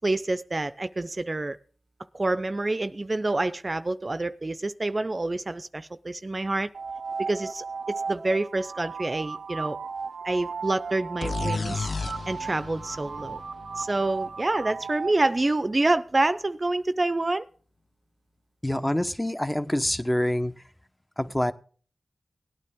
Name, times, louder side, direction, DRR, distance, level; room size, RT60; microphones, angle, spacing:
voice 1, 0.0-1.6 2.1-6.7 7.2-9.8 10.2-11.9 12.3-13.4 13.8-17.5, right 2 dB, 40° right, 0.6 m, -27 dB
sound 1, 6.7-15.2, right 5 dB, 85° right, 0.5 m, -36 dB
sound 2, 11.2-14.9, left 4 dB, 70° left, 0.5 m, -34 dB
voice 2, 18.6-20.5 21.2-21.5, left 1 dB, 15° left, 1.0 m, -26 dB
18.0 x 9.3 x 3.6 m
cardioid pair, 40°, 0 cm